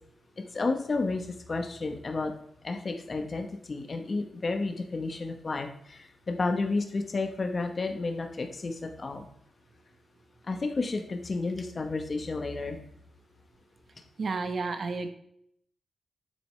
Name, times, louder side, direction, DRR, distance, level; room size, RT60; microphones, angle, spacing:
voice 1, 0.4-2.3 2.6-9.3 10.5-12.8, left 3 dB, 35° left, 4 dB, 1.0 m, -31 dB
voice 2, 14.2-15.1, right 4 dB, 50° right, 8 dB, 0.8 m, -31 dB
9.4 x 7.0 x 3.2 m, 0.69 s
wide cardioid pair, 135°, 0 cm